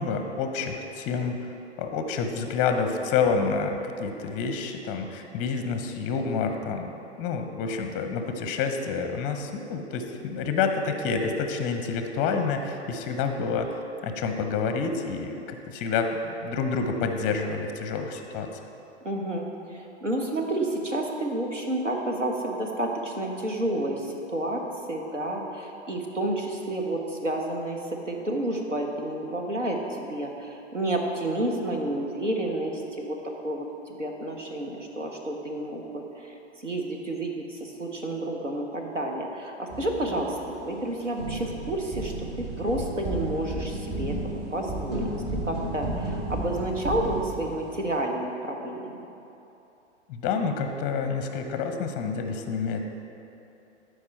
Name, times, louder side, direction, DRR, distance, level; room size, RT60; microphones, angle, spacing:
voice 1, 0.0-1.5 1.8-13.8 14.0-18.5 50.1-52.8, left 5 dB, 20° left, 6 dB, 0.6 m, -28 dB
voice 2, 19.0-24.6 24.9-27.8 28.0-33.2 33.4-36.4 36.6-40.4 40.6-45.1 45.5-49.0, right 1 dB, 90° right, 1 dB, 1.1 m, -30 dB
sound 1, 39.7-40.8 41.2-48.0, right 1 dB, 35° right, 1.7 m, -33 dB
12.5 x 4.8 x 4.4 m, 2.9 s
figure-of-eight pair, 105°, 36 cm